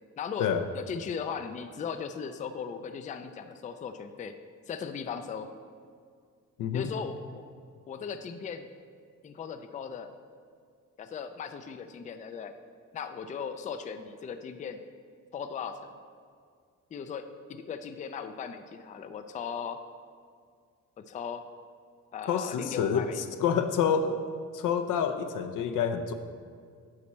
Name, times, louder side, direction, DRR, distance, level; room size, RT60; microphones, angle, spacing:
voice 1, 0.2-0.5 0.7-4.4 4.7-5.5 6.7-7.4 7.9-8.7 9.2-10.1 11.0-12.5 12.9-14.8 15.3-15.8 16.9-19.8 21.1-21.4 22.1-23.2, left 6 dB, 25° left, 9 dB, 0.3 m, -37 dB
voice 2, 6.6-6.9 22.3-24.2 24.5-26.1, left 7 dB, 85° left, 8 dB, 0.7 m, -28 dB
9.7 x 4.2 x 7.2 m, 2.1 s
cardioid pair, 155°, 31 cm